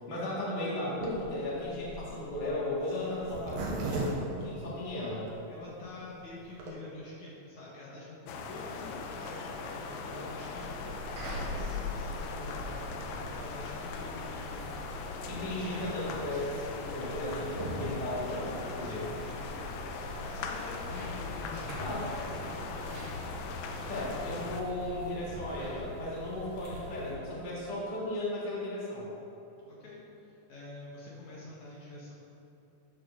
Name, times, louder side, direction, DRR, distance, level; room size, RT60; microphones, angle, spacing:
voice 1, 0.1-5.3 15.3-19.0 21.8-22.1 23.9-29.1, left 1 dB, 35° left, -7 dB, 0.7 m, -35 dB
Zipper (clothing), 1.0-5.3 5.8-5.9 6.1-6.2 6.4-6.7, right 2 dB, 70° right, 2.8 m, -38 dB
voice 2, 5.5-12.9 13.2-14.8 18.8-23.3 29.7-32.1, left 2 dB, 65° left, -6 dB, 2.0 m, -47 dB
sound 1, 8.3-24.6, left 4 dB, 80° left, 2.4 m, -40 dB
sound 2, 10.5-27.1, left 1 dB, 55° right, 2.2 m, -42 dB
11.0 x 4.6 x 6.0 m, 2.9 s
omnidirectional pair, 4.7 m